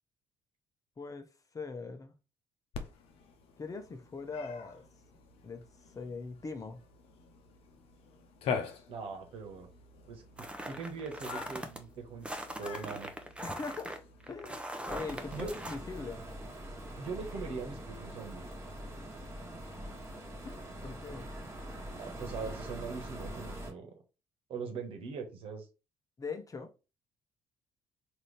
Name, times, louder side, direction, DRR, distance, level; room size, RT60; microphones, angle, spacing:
voice 1, 1.0-2.1 3.6-4.8 5.4-5.6 5.9-6.8 13.4-14.0 14.3-16.2 20.4-21.3 26.2-26.7, left 4 dB, 35° left, 0.9 m, -41 dB
Cat, 2.7-16.4, left 6 dB, 65° left, 0.8 m, -45 dB
voice 2, 8.9-9.7 10.1-12.3 12.6-13.1 15.3-15.6 17.0-18.4 22.0-23.9 24.5-25.7, right 5 dB, 65° right, 1.3 m, -41 dB
sound 1, 10.4-11.8 12.2-15.8, right 1 dB, 10° right, 0.8 m, -41 dB
sound 2, 14.9-23.7, equal, 25° right, 1.4 m, -43 dB
3.9 x 2.8 x 3.3 m
hypercardioid pair, 55°, 11 cm